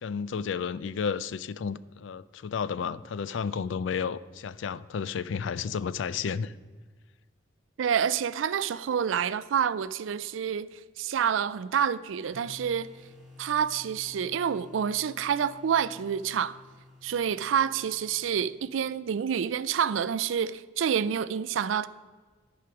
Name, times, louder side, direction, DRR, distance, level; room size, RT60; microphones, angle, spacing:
voice 1, 0.0-6.5, left 6 dB, 75° left, 0.4 m, -32 dB
voice 2, 7.8-12.9 13.4-16.6 17.0-21.9, right 8 dB, 90° right, 0.4 m, -28 dB
sound 1, 12.3-19.1, left 2 dB, ahead, 1.7 m, -53 dB
11.5 x 4.9 x 6.0 m
head